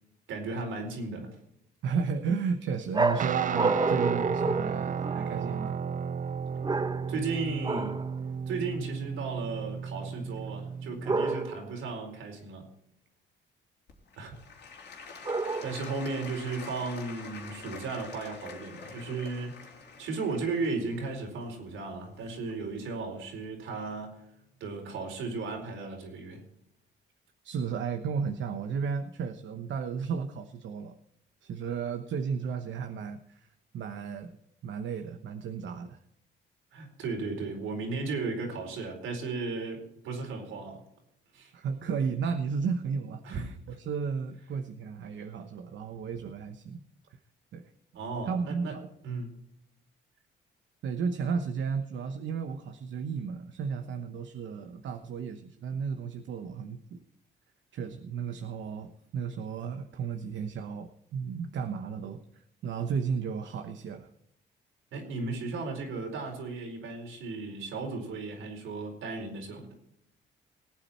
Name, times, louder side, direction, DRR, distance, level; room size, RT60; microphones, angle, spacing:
voice 1, 0.3-1.3 7.1-8.1 8.5-12.6 14.2-14.4 15.2-15.3 15.6-24.3 24.6-26.4 36.7-40.8 41.3-41.5 43.2-43.4 43.7-43.8 47.9-48.7 49.0-49.3 64.9-69.7, right 3 dB, 85° right, 2 dB, 4.5 m, -35 dB
voice 2, 1.8-5.8 27.4-30.9 31.4-33.5 33.7-34.3 34.6-36.0 41.5-46.8 47.5-47.6 48.3-48.9 50.8-57.0 57.7-64.1, right 6 dB, 70° right, 7 dB, 1.0 m, -33 dB
sound 1, 2.9-5.4 6.6-7.3 7.6-8.1 11.0-11.7 15.2-16.0, right 3 dB, 20° right, 0.9 m, -29 dB
Guitar, 3.2-11.3, right 6 dB, 40° right, 0.5 m, -34 dB
Applause / Crowd, 13.9-22.8 23.4-23.5, left 5 dB, 60° left, 3.4 m, -46 dB
19.0 x 8.8 x 4.4 m, 0.76 s
cardioid pair, 90°, 20 cm